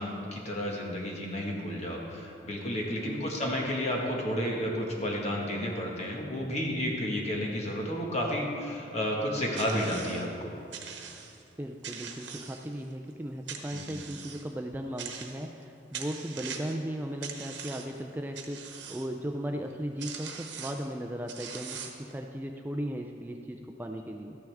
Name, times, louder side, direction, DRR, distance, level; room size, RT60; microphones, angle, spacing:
voice 1, 0.0-10.5 13.7-13.9, equal, 40° left, -1 dB, 1.6 m, -31 dB
voice 2, 2.9-3.2 11.6-24.4, equal, 10° right, 3 dB, 0.4 m, -37 dB
sound 1, 9.5-10.3 10.7-11.4 11.8-12.9 13.5-14.5 15.0-15.6 15.9-16.8 17.2-18.0 18.4-19.1 19.7-19.8 20.0-20.9 21.3-22.1, right 7 dB, 90° right, 1.0 m, -42 dB
13.0 x 9.5 x 3.5 m, 2.6 s
head